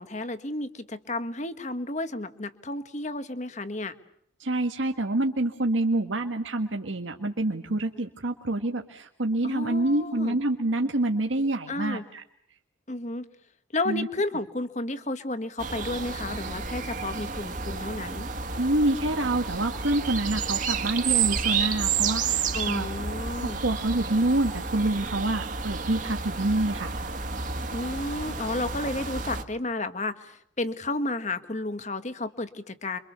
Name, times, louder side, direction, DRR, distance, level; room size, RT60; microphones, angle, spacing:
voice 1, 0.0-3.9 9.4-10.4 11.7-12.0 12.9-13.2 13.7-18.3 22.5-23.6 27.7-33.0, left 2 dB, 40° left, 10 dB, 1.5 m, -32 dB
voice 2, 4.4-12.2 13.9-14.1 18.6-22.9 23.6-26.9, right 2 dB, 85° right, 3 dB, 1.7 m, -27 dB
sound 1, 15.6-29.4, right 6 dB, 45° right, 1.9 m, -30 dB
28.5 x 24.5 x 6.9 m, 0.70 s
head